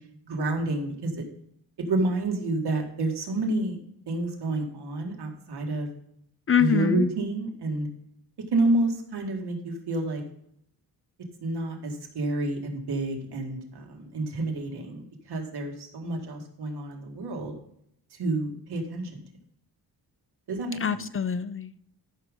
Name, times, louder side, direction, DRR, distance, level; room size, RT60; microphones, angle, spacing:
voice 1, 0.3-1.1 1.9-3.8 4.1-5.9 6.6-7.9 8.5-10.2 11.4-17.5 18.2-19.2 20.5-21.0, right 2 dB, 75° right, 1 dB, 2.2 m, -29 dB
voice 2, 6.5-7.1 20.8-21.8, left 8 dB, 35° left, 15 dB, 0.4 m, -25 dB
13.5 x 6.3 x 3.8 m, 0.72 s
wide cardioid pair, 115°, 39 cm